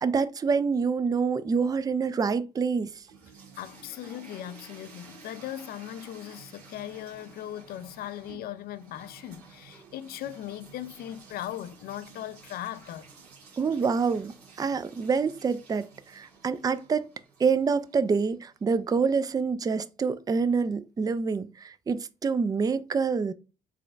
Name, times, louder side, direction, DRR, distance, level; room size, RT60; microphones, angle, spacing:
voice 1, 0.0-2.9 13.6-17.1 17.4-23.3, right 5 dB, 20° right, 0.4 m, -26 dB
sound 1, 2.7-18.7, right 5 dB, 85° right, 1.0 m, -52 dB
voice 2, 3.6-13.1, left 12 dB, 55° left, 0.4 m, -39 dB
4.8 x 3.9 x 2.4 m
figure-of-eight pair, 45°, 19 cm